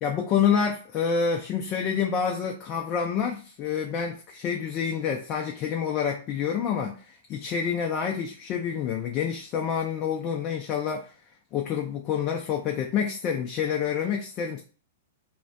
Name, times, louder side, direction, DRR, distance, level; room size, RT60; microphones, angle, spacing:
voice 1, 0.0-11.1 11.5-14.6, left 7 dB, 35° left, 0.4 m, -28 dB
2.4 x 2.1 x 2.5 m
hypercardioid pair, 115°, 0 cm